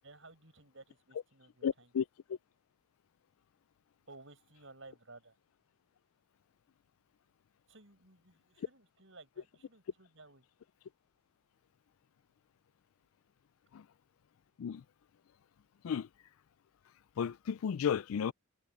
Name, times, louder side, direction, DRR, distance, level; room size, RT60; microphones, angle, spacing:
voice 1, 0.0-1.9 4.1-5.4 7.7-10.5, right 2 dB, 65° right, 7.3 m, -56 dB
voice 2, 1.6-2.0 13.7-13.8 14.6-14.8 15.8-16.1 17.2-18.3, left 7 dB, 80° left, 0.4 m, -33 dB
head